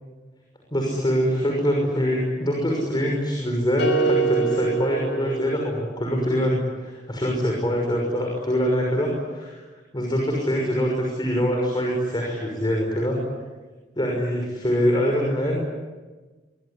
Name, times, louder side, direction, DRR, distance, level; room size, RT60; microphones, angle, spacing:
voice 1, 0.7-9.6 9.9-13.2 14.0-15.6, equal, 25° left, 0 dB, 6.0 m, -24 dB
sound 1, 3.8-6.1, right 4 dB, 70° left, 5.3 m, -25 dB
24.5 x 24.0 x 10.0 m, 1.3 s
head